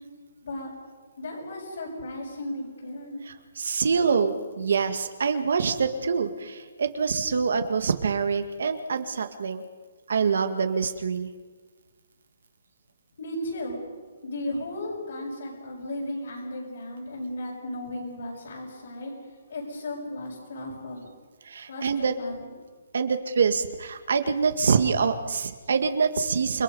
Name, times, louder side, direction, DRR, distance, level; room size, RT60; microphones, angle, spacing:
voice 1, 1.2-3.2 13.2-13.8 14.2-19.1 19.5-21.2 21.7-21.9 22.2-22.5, left 1 dB, 60° left, -4 dB, 6.5 m, -35 dB
voice 2, 3.2-9.6 10.1-11.3 21.5-22.1 22.9-26.6, right 5 dB, 65° right, 8 dB, 1.8 m, -25 dB
29.0 x 21.0 x 5.5 m, 1.4 s
hypercardioid pair, 175°, 0 cm